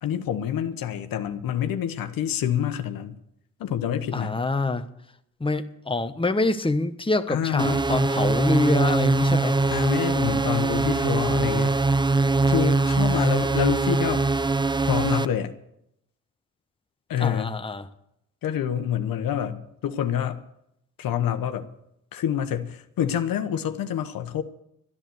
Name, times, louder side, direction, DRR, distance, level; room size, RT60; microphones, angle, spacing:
voice 1, 0.0-3.2 3.6-4.4 7.3-7.8 9.7-11.7 12.4-14.2 14.9-15.5 17.1-17.6 18.4-20.4 21.0-21.7 22.1-24.4, left 9 dB, 75° left, 1.1 m, -27 dB
voice 2, 4.1-4.8 5.4-9.5 17.2-17.9, left 2 dB, 15° left, 1.2 m, -25 dB
sound 1, 7.6-15.3, right 3 dB, 15° right, 0.7 m, -22 dB
13.0 x 10.5 x 7.9 m
supercardioid pair, 55°, 34 cm